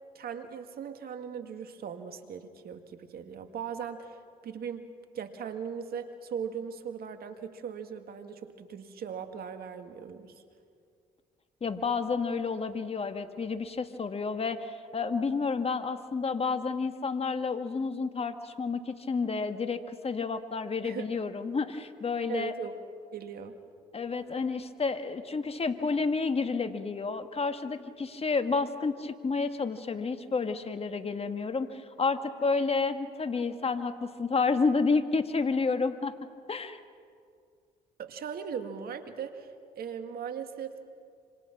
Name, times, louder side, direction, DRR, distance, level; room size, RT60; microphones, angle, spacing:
voice 1, 0.2-4.2 4.4-4.9 5.1-10.4 20.8-21.1 22.3-22.7 23.1-23.5 38.0-39.5 39.8-40.8, right 7 dB, 65° right, 7 dB, 2.0 m, -39 dB
voice 2, 11.6-22.5 23.9-36.1 36.5-36.8, left 4 dB, 35° left, 9 dB, 1.8 m, -30 dB
26.5 x 26.0 x 6.1 m, 2.2 s
supercardioid pair, 60°, 17 cm